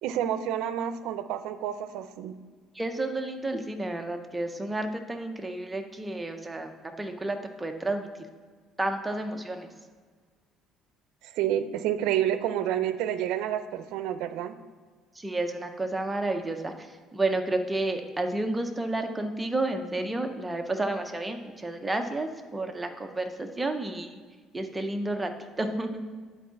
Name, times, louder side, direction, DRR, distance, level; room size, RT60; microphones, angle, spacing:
voice 1, 0.0-2.4 11.2-14.6, right 10 dB, 80° right, 11 dB, 0.5 m, -29 dB
voice 2, 2.7-6.7 7.0-8.1 8.8-9.7 15.1-24.2 24.5-25.3 25.6-26.0, right 2 dB, 10° right, 5 dB, 0.6 m, -31 dB
9.8 x 4.6 x 5.7 m, 1.5 s
cardioid pair, 160°, 0 cm